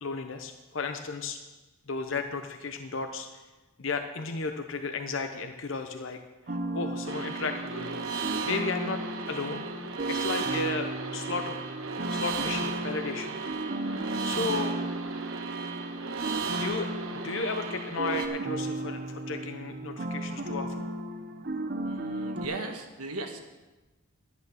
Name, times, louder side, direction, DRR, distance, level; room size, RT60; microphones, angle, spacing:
voice 1, 0.0-1.4 1.9-3.3 3.8-6.2 6.5-8.0 8.5-9.0 9.3-9.7 10.1-11.6 12.1-13.4 14.2-14.8 16.5-20.9, left 4 dB, 55° left, 6 dB, 0.7 m, -34 dB
sound 1, 6.5-22.5, right 1 dB, 40° right, 0.7 m, -35 dB
sound 2, 7.1-18.3, right 5 dB, 65° right, 1.2 m, -35 dB
voice 2, 21.8-23.4, right 2 dB, 85° right, 4 dB, 1.5 m, -37 dB
11.5 x 9.1 x 6.4 m, 1.1 s
head